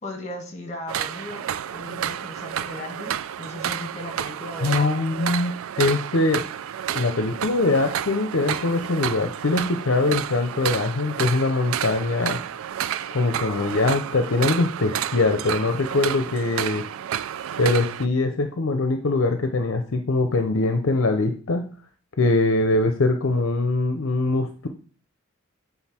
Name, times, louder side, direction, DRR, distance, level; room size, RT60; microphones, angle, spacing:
voice 1, 0.0-4.9, left 1 dB, 35° left, 3 dB, 1.6 m, -37 dB
sound 1, 0.9-18.1, right 10 dB, 75° right, 0.3 m, -30 dB
voice 2, 4.6-6.5 6.9-12.4 13.1-16.8 17.6-21.7 22.2-24.7, left 2 dB, 65° left, 6 dB, 0.6 m, -22 dB
7.9 x 3.8 x 4.3 m, 0.39 s
head